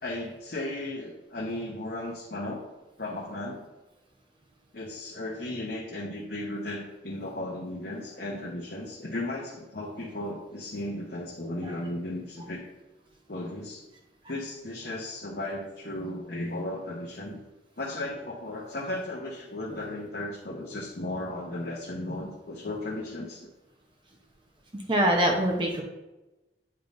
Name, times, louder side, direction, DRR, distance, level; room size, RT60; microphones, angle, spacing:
voice 1, 0.0-2.6 3.0-3.7 4.7-12.6 13.3-13.8 14.3-17.4 17.8-23.5, left 1 dB, 55° left, -4 dB, 0.9 m, -35 dB
voice 2, 24.7-25.8, right 1 dB, 25° right, 0 dB, 0.8 m, -24 dB
8.8 x 5.2 x 2.6 m, 1.0 s
head